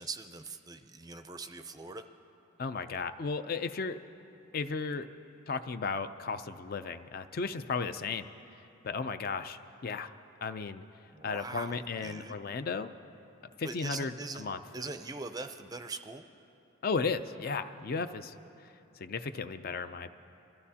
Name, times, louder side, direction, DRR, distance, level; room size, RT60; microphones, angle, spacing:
voice 1, 0.0-2.0 11.1-12.3 13.6-14.5 14.7-16.2, right 3 dB, 20° right, 8 dB, 0.4 m, -42 dB
voice 2, 2.6-4.0 4.5-5.1 5.5-8.3 8.8-10.1 10.4-10.8 11.2-12.9 13.6-14.6 16.8-18.3 19.0-20.2, left 4 dB, 45° left, 10 dB, 0.4 m, -35 dB
24.5 x 14.0 x 2.8 m, 2.9 s
head